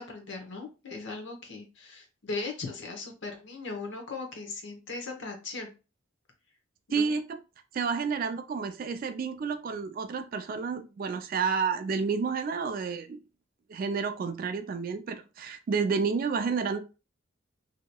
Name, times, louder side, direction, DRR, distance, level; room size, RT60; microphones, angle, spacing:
voice 1, 0.0-5.7 6.9-7.1, left 3 dB, 60° left, 0.9 m, -38 dB
voice 2, 6.9-7.4 7.7-13.2 13.7-16.8, right 5 dB, 45° right, 0.3 m, -30 dB
2.8 x 2.7 x 2.2 m
head